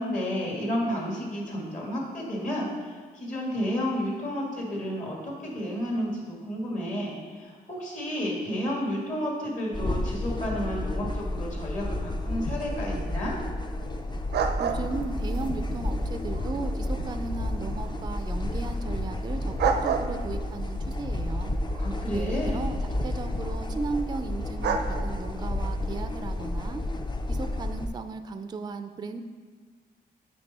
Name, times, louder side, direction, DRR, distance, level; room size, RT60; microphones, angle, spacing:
voice 1, 0.0-13.3 21.8-22.8, equal, 45° left, -2 dB, 2.1 m, -31 dB
sound 1, 9.7-27.9, left 1 dB, 25° left, 0.5 m, -31 dB
sound 2, 14.3-26.5, right 6 dB, 80° right, 0.5 m, -35 dB
voice 2, 14.6-21.5 22.1-26.8 27.3-29.2, right 4 dB, 25° right, 8 dB, 0.4 m, -36 dB
8.7 x 4.4 x 4.2 m, 1.5 s
cardioid pair, 95°, 17 cm